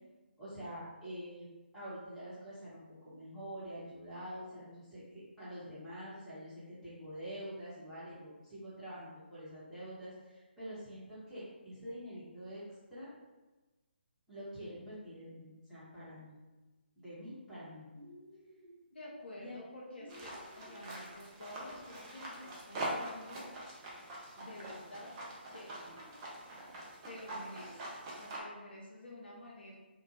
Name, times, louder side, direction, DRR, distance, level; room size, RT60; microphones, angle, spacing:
voice 1, 0.4-12.6 12.9-13.1 14.3-16.4 17.0-17.9 19.4-19.6, equal, ahead, -15 dB, 1.0 m, -46 dB
sound 1, 17.9-18.8 19.9-20.9, equal, 50° right, 1.4 m, -55 dB
voice 2, 18.9-23.5 24.4-25.1 25.5-25.8 27.1-29.8, left 1 dB, 60° left, -3 dB, 0.6 m, -50 dB
sound 2, 20.1-28.4, right 1 dB, 20° right, 0.4 m, -44 dB
2.4 x 2.2 x 2.6 m, 1.2 s
figure-of-eight pair, 145°, 6 cm